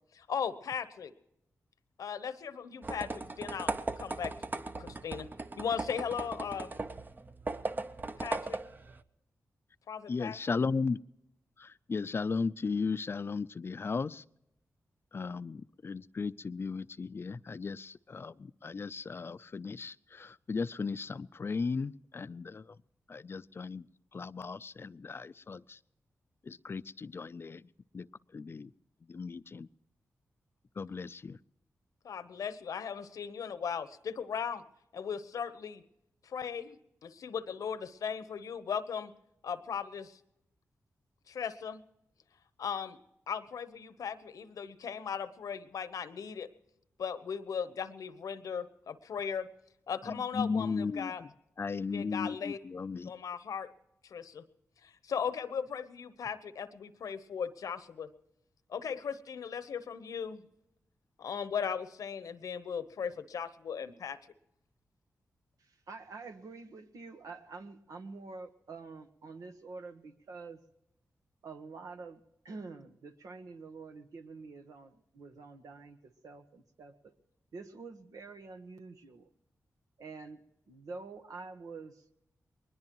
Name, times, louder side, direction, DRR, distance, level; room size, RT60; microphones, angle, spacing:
voice 1, 0.1-1.1 2.0-5.3 5.6-6.8 8.2-8.6 9.9-10.4 32.0-34.6 34.9-35.8 36.2-39.1 39.4-40.2 41.3-41.8 42.6-43.0 43.3-46.5 47.0-49.5 49.9-51.2 51.9-52.6 53.1-53.7 54.0-54.4 54.8-58.1 58.7-60.4 61.2-64.2, left 7 dB, 85° left, 13 dB, 1.0 m, -37 dB
sound 1, 2.8-9.0, right 3 dB, 35° right, 0.8 m, -38 dB
voice 2, 10.1-11.0 11.6-14.2 15.1-22.8 23.1-23.9 24.1-25.8 26.4-27.7 27.9-28.1 28.3-28.7 29.1-29.7 30.8-31.4 50.1-51.3 51.6-53.1, left 4 dB, 45° left, 15 dB, 0.5 m, -36 dB
voice 3, 65.6-70.6 71.4-76.9 77.5-79.3 80.0-80.4 80.7-82.0, right 4 dB, 80° right, 7 dB, 1.3 m, -47 dB
21.5 x 20.0 x 3.0 m, 0.82 s
cardioid pair, 75°, 6 cm